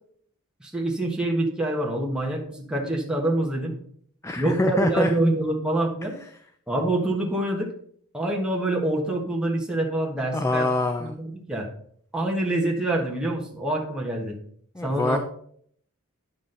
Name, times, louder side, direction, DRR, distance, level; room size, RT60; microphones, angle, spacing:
voice 1, 0.6-3.7 4.4-6.2 6.7-7.7 8.1-10.7 11.0-11.7 12.1-14.4 14.8-15.2, right 1 dB, 5° right, -2 dB, 1.3 m, -26 dB
voice 2, 4.2-5.1 10.3-11.2 14.7-15.2, left 2 dB, 15° left, 7 dB, 0.5 m, -24 dB
9.5 x 6.1 x 3.9 m, 0.62 s
head